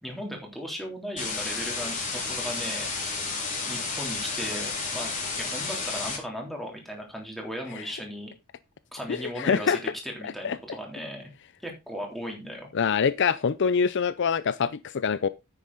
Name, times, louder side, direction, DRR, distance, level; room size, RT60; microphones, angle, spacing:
voice 1, 0.0-2.9 3.7-8.3 8.9-11.3 11.6-12.7, equal, ahead, 3.5 m, -37 dB
sound 1, 1.2-6.2, left 4 dB, 35° left, 4.9 m, -31 dB
voice 2, 9.1-9.8 10.2-10.6 12.7-15.3, left 6 dB, 55° left, 0.5 m, -25 dB
10.0 x 8.7 x 4.1 m
head